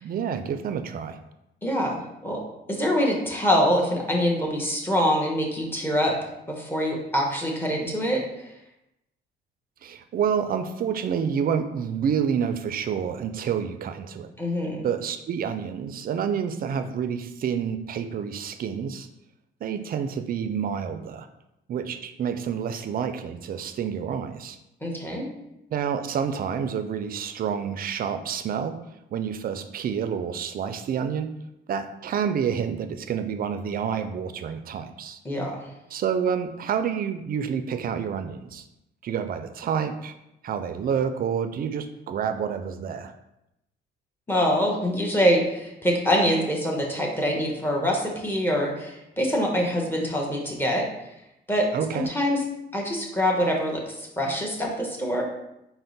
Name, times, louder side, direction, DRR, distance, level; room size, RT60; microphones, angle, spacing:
voice 1, 0.0-1.2 9.8-14.3 14.8-19.1 19.6-21.3 21.7-24.6 25.7-28.8 29.1-31.3 31.7-35.2 35.9-38.6 39.0-40.1 40.4-43.1 51.7-52.1, right 7 dB, 45° right, 8 dB, 0.4 m, -28 dB
voice 2, 1.6-2.4 2.7-6.1 6.6-8.2 14.4-14.8 24.8-25.3 35.2-35.6 44.3-50.8 51.5-51.7 51.9-52.4 52.7-55.2, equal, 10° left, -1 dB, 1.0 m, -24 dB
4.3 x 2.1 x 4.0 m, 0.86 s
cardioid pair, 90°, 20 cm